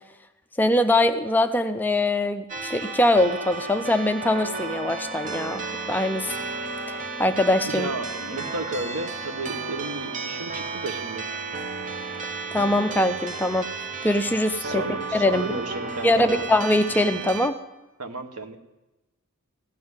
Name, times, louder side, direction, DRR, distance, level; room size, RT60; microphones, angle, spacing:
voice 1, 0.6-5.6 5.9-6.3 6.9-7.9 12.5-14.8 15.1-15.5 16.0-17.6, left 1 dB, 10° left, 7 dB, 0.4 m, -22 dB
sound 1, 2.5-17.5, right 4 dB, 35° right, 0.8 m, -33 dB
voice 2, 7.7-11.3 14.6-16.4 18.0-18.6, right 2 dB, 85° right, 8 dB, 1.1 m, -33 dB
15.5 x 5.6 x 9.6 m, 1.0 s
head